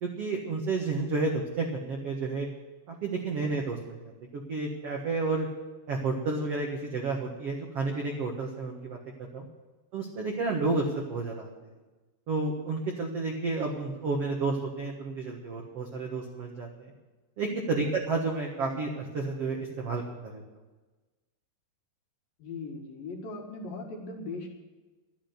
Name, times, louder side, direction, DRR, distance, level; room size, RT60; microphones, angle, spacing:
voice 1, 0.0-2.5 2.9-4.0 4.3-5.5 5.9-9.0 9.3-9.5 9.9-11.5 12.3-16.9 17.4-20.0 20.3-20.4, right 3 dB, 70° right, 0 dB, 1.4 m, -31 dB
voice 2, 22.4-24.5, left 3 dB, 60° left, 1 dB, 3.1 m, -39 dB
12.5 x 10.0 x 8.0 m, 1.2 s
omnidirectional pair, 5.2 m